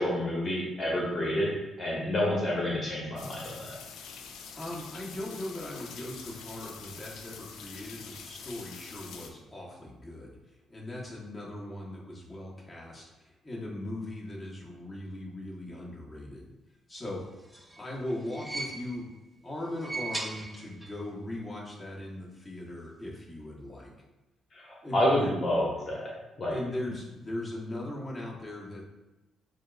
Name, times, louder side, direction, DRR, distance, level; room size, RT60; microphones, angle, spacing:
voice 1, 0.0-1.5 1.8-3.7 24.5-26.1 26.4-26.5, left 1 dB, 40° left, -4 dB, 1.0 m, -28 dB
sound 1, 3.2-9.3, left 6 dB, 85° left, 0.4 m, -45 dB
voice 2, 4.6-16.5 16.9-17.2 17.8-19.1 19.4-23.9 24.8-25.3 26.5-28.9, left 1 dB, 10° left, -6 dB, 1.3 m, -39 dB
sound 2, 17.2-19.2 19.6-21.1 21.3-21.4 22.5-22.6, right 2 dB, 10° right, 0.5 m, -39 dB
7.1 x 2.5 x 2.4 m, 1.0 s
cardioid pair, 90°, 0 cm